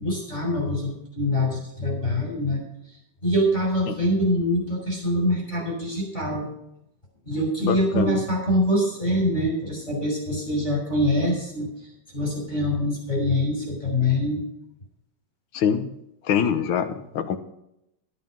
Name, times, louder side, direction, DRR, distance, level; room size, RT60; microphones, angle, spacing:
voice 1, 0.0-2.6 3.2-6.5 7.3-11.7 12.1-14.4, left 1 dB, 20° left, -1 dB, 6.2 m, -24 dB
voice 2, 7.6-8.2 15.5-15.9 16.2-17.4, left 7 dB, 65° left, 8 dB, 1.8 m, -24 dB
12.5 x 11.5 x 5.3 m, 0.80 s
omnidirectional pair, 2.4 m